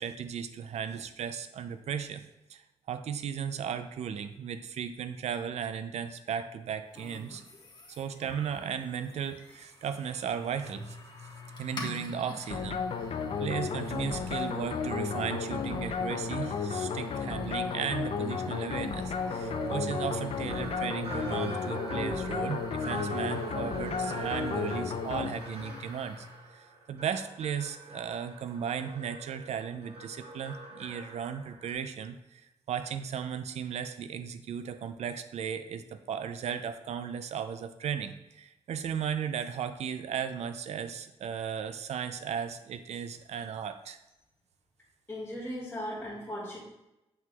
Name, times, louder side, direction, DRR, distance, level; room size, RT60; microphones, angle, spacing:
voice 1, 0.0-2.2 2.5-7.4 8.0-11.0 11.6-12.8 13.4-26.3 26.5-32.4 32.7-44.0, right 8 dB, 85° right, 10 dB, 0.4 m, -36 dB
sound 1, 6.9-26.5, left 4 dB, 45° left, 1.3 m, -47 dB
sound 2, 12.5-25.8, left 6 dB, 65° left, 0.5 m, -33 dB
sound 3, 14.3-31.7, right 3 dB, 65° right, 1.0 m, -43 dB
voice 2, 45.1-46.6, equal, 15° left, -10 dB, 2.0 m, -37 dB
7.7 x 6.0 x 2.3 m, 0.95 s
wide cardioid pair, 115°, 11 cm